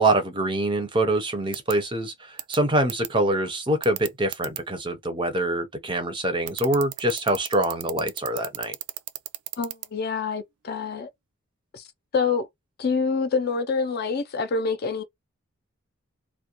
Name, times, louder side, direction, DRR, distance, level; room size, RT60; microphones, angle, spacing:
voice 1, 0.0-8.8, right 1 dB, 20° right, 0.5 m, -25 dB
sound 1, 1.5-1.7 2.4-2.6 2.9-3.1 3.8-4.6 6.5-9.9, right 15 dB, 80° right, 0.3 m, -33 dB
voice 2, 9.6-11.1 11.7-11.9 12.1-12.5 12.8-15.0, left 5 dB, 45° left, 0.4 m, -26 dB
2.3 x 2.1 x 2.8 m
head